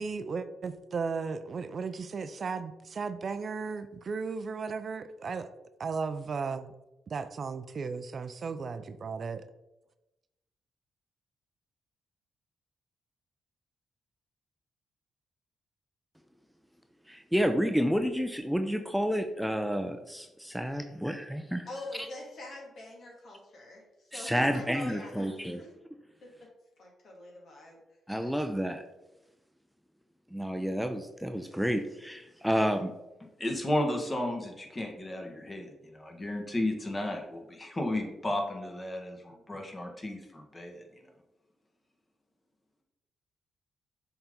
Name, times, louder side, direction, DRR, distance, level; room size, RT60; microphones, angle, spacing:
voice 1, 0.0-5.5 5.8-6.7 7.1-9.4, right 5 dB, 55° right, 11 dB, 0.5 m, -35 dB
voice 2, 17.1-21.7 22.0-22.1 24.1-25.6 28.1-28.8 30.3-32.9, equal, ahead, 6 dB, 0.6 m, -30 dB
voice 3, 21.7-25.3 25.6-25.7 26.2-26.5 26.8-27.8, left 2 dB, 65° left, -1 dB, 2.2 m, -44 dB
voice 4, 33.4-40.8, left 1 dB, 30° left, 2 dB, 1.7 m, -33 dB
7.0 x 3.9 x 3.8 m, 0.98 s
supercardioid pair, 50°, 0 cm